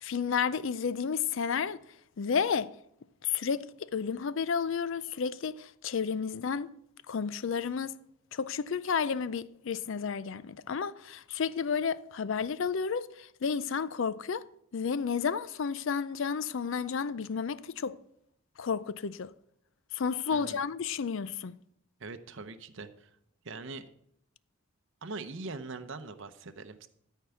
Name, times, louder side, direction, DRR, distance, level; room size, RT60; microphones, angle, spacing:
voice 1, 0.0-1.8 2.2-2.7 3.2-6.7 7.1-8.0 8.3-14.5 14.7-18.0 18.6-19.3 19.9-21.6, left 6 dB, 60° left, 0.4 m, -31 dB
voice 2, 20.3-20.6 22.0-23.1 23.4-23.9 25.0-26.9, right 3 dB, 60° right, 0.7 m, -42 dB
13.0 x 4.6 x 7.0 m
head